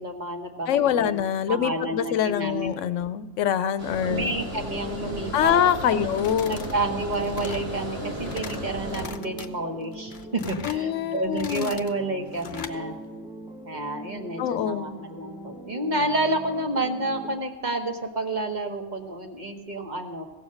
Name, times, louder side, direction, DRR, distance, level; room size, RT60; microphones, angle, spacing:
voice 1, 0.0-1.2 1.5-2.7 4.0-5.6 6.0-6.1 6.5-13.0 13.6-20.2, right 1 dB, 40° right, 4 dB, 1.2 m, -30 dB
voice 2, 0.7-4.4 5.3-6.7 10.6-11.7 14.4-14.9, left 9 dB, 85° left, 14 dB, 0.9 m, -24 dB
Water, 3.8-9.1, equal, 90° right, 3.7 m, -35 dB
sound 1, 4.0-17.4, equal, 5° right, 0.8 m, -42 dB
sound 2, 6.1-6.8 7.1-7.7 8.1-8.6 8.9-9.5 9.9-10.8 11.2-11.9 12.3-12.8, left 6 dB, 45° left, 0.8 m, -40 dB
16.5 x 7.1 x 6.4 m, 1.3 s
omnidirectional pair, 1.2 m